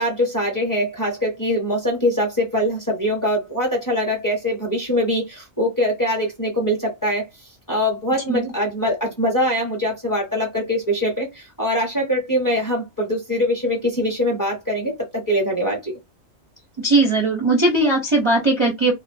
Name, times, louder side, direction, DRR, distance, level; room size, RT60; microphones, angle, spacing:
voice 1, 0.0-7.3 7.7-16.0, equal, 15° left, 0.9 m, -23 dB
voice 2, 16.8-18.9, right 2 dB, 30° right, 0.7 m, -18 dB
2.5 x 2.5 x 2.7 m
omnidirectional pair, 1.4 m